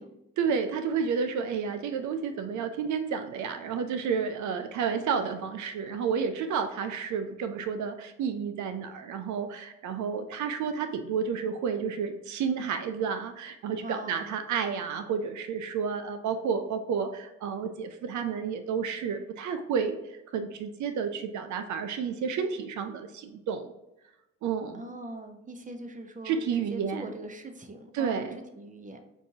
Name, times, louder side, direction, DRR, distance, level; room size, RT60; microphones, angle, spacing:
voice 1, 0.4-23.7 24.4-24.8 26.2-27.1 27.9-28.4, right 6 dB, 80° right, 8 dB, 0.5 m, -31 dB
voice 2, 13.8-14.3 24.7-26.4 26.7-29.0, right 1 dB, 25° right, 6 dB, 0.8 m, -41 dB
6.1 x 2.6 x 2.7 m, 0.94 s
cardioid pair, 65°, 29 cm